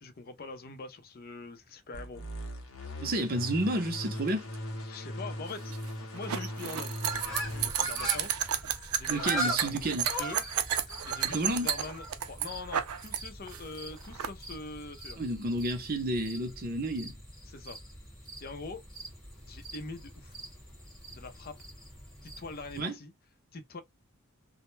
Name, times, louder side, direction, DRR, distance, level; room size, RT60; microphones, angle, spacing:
voice 1, 0.0-2.2 4.9-5.7 6.1-7.0 7.4-8.3 8.9-9.8 10.2-10.4 11.1-15.2 17.5-17.8 18.4-18.9 19.5-20.4 21.1-21.6 22.2-23.1 23.5-23.8, left 3 dB, 45° left, 0.5 m, -43 dB
sound 1, 1.9-7.7, equal, 80° left, 0.7 m, -39 dB
voice 2, 3.0-4.5 9.1-10.1 11.3-11.7 15.2-17.1 22.7-22.9, right 1 dB, 45° right, 0.6 m, -31 dB
sound 2, 5.5-13.2 13.5-14.3, right 10 dB, 90° right, 0.4 m, -32 dB
sound 3, 7.0-22.8, right 1 dB, ahead, 1.0 m, -41 dB
2.1 x 2.1 x 3.0 m
head